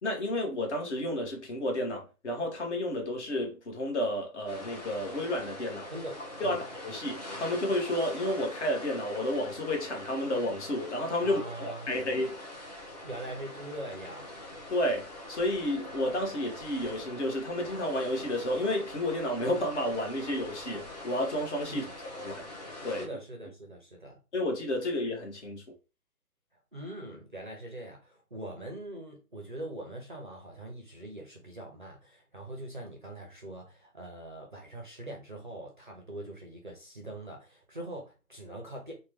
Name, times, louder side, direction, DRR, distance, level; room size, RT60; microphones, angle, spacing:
voice 1, 0.0-5.9 6.4-12.4 14.7-21.9 22.1-22.4 22.8-23.1 24.3-25.6, left 1 dB, 45° left, 1.0 m, -31 dB
sound 1, 4.5-23.0, left 1 dB, 25° left, 0.6 m, -44 dB
voice 2, 5.9-6.6 11.2-12.1 13.0-14.3 21.7-21.9 23.0-24.2 26.7-39.0, right 1 dB, 35° right, 0.4 m, -42 dB
2.9 x 2.2 x 3.2 m
figure-of-eight pair, 140°, 47 cm